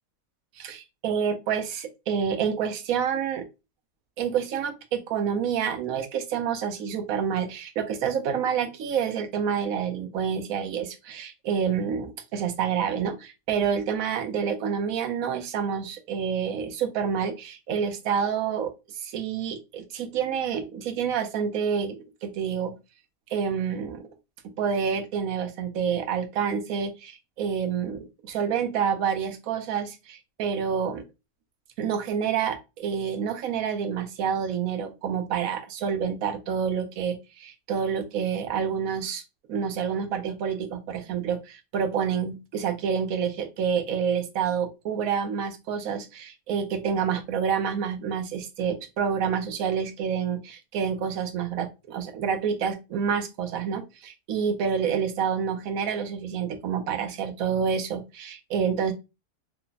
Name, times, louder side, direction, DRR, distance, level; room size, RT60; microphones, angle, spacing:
voice 1, 0.6-3.4 4.2-22.7 23.3-24.1 24.6-31.0 31.8-39.2 39.5-58.9, right 7 dB, 70° right, 7 dB, 1.0 m, -28 dB
3.3 x 2.1 x 3.9 m, 0.26 s
omnidirectional pair, 1.7 m